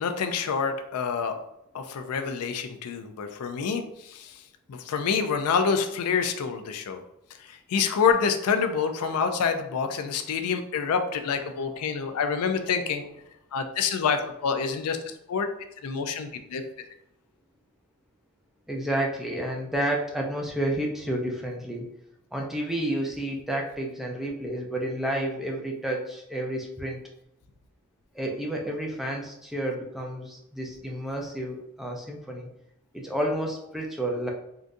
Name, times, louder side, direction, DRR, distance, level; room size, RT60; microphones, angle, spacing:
voice 1, 0.0-1.4 1.7-4.4 4.7-7.0 7.4-13.1 13.5-15.5 15.8-16.6, left 6 dB, 80° left, 7 dB, 0.4 m, -27 dB
voice 2, 18.7-21.8 22.3-27.0 28.1-32.5 32.9-34.3, right 1 dB, ahead, -1 dB, 0.4 m, -30 dB
3.8 x 2.4 x 2.5 m, 0.82 s
head